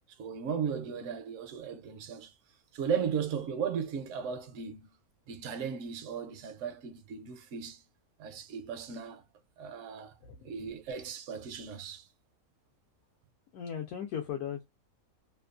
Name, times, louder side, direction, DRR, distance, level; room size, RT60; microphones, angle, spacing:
voice 1, 0.2-2.3 2.7-4.9 5.3-7.8 8.2-9.2 9.6-10.1 10.4-12.0, right 7 dB, 65° right, 0.8 m, -36 dB
voice 2, 10.2-10.6 13.5-14.6, left 8 dB, 85° left, 1.1 m, -37 dB
2.8 x 2.2 x 2.3 m
omnidirectional pair, 1.6 m